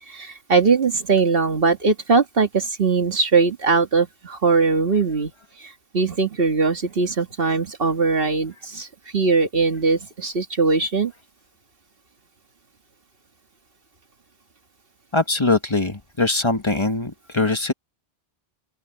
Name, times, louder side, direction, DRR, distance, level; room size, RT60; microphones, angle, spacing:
voice 1, 0.0-5.3 5.6-8.9 9.1-11.1, right 4 dB, 60° right, 1.9 m, -20 dB
voice 2, 15.1-17.7, left 3 dB, 25° left, 1.3 m, -22 dB
open air
omnidirectional pair, 1.1 m